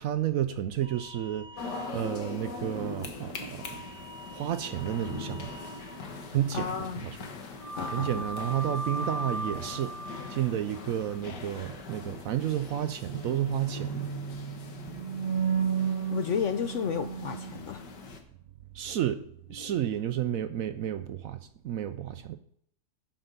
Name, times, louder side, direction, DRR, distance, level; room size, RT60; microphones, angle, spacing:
voice 1, 0.0-3.8 4.3-5.5 6.3-7.2 7.9-10.0 10.3-14.1 18.7-19.2 19.5-21.4 21.6-22.4, right 11 dB, 70° right, 0.9 m, -31 dB
sound 1, 0.8-2.6 3.6-6.4 7.6-10.4 12.9-17.9 19.5-20.4, right 5 dB, 10° left, 2.5 m, -36 dB
sound 2, 1.6-18.2, left 4 dB, 90° left, 1.9 m, -42 dB
voice 2, 6.5-7.1 7.7-8.1 16.1-17.8, left 7 dB, 65° left, 0.8 m, -32 dB
8.4 x 7.9 x 5.3 m
omnidirectional pair, 1.8 m